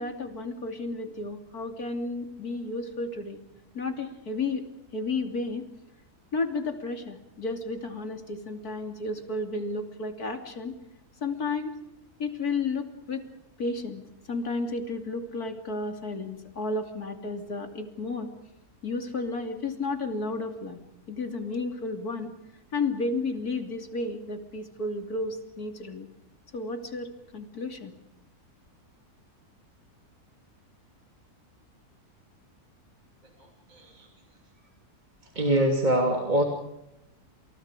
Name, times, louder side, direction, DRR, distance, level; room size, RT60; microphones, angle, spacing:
voice 1, 0.0-3.4 3.8-5.6 6.3-10.7 11.2-11.7 12.2-13.3 13.6-14.0 14.3-18.3 18.8-20.8 21.1-22.3 22.7-26.1 26.5-27.9, left 3 dB, 70° left, 6 dB, 3.4 m, -32 dB
voice 2, 33.7-34.1 35.3-36.4, right 1 dB, 30° right, 2 dB, 3.1 m, -24 dB
29.0 x 28.5 x 5.0 m, 0.84 s
omnidirectional pair, 1.7 m